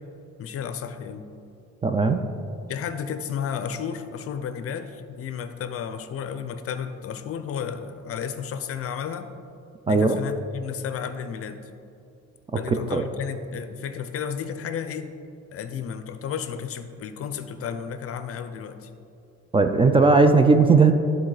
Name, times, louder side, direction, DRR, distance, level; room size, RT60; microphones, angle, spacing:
voice 1, 0.4-1.3 2.7-9.3 9.9-11.7 12.5-15.1 15.5-18.9, left 7 dB, 50° left, 10 dB, 0.6 m, -32 dB
voice 2, 1.8-2.2 9.9-10.2 12.9-13.0 19.5-20.9, right 4 dB, 20° right, 7 dB, 0.4 m, -17 dB
11.0 x 4.1 x 4.8 m, 2.6 s
cardioid pair, 105°, 29 cm